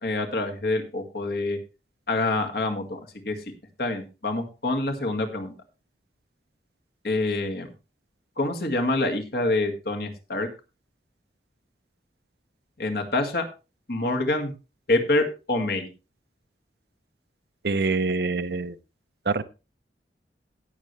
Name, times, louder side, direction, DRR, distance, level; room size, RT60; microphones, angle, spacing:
voice 1, 0.0-1.6 2.1-3.0 3.2-3.4 3.8-5.5 7.0-7.7 8.4-10.5 12.8-13.4 13.9-14.5 14.9-15.9, left 2 dB, 60° left, 4 dB, 1.9 m, -26 dB
voice 2, 17.6-18.7 19.3-19.4, right 3 dB, 65° right, 13 dB, 0.7 m, -25 dB
18.0 x 6.8 x 3.2 m, 0.30 s
head